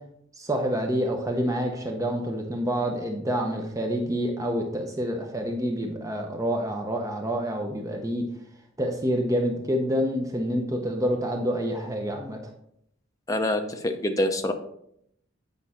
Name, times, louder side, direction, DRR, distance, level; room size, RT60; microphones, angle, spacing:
voice 1, 0.4-8.2 8.8-12.4, equal, 15° right, 2 dB, 0.7 m, -27 dB
voice 2, 13.3-14.5, left 1 dB, 15° left, 5 dB, 0.7 m, -25 dB
8.5 x 5.4 x 4.2 m, 0.73 s
head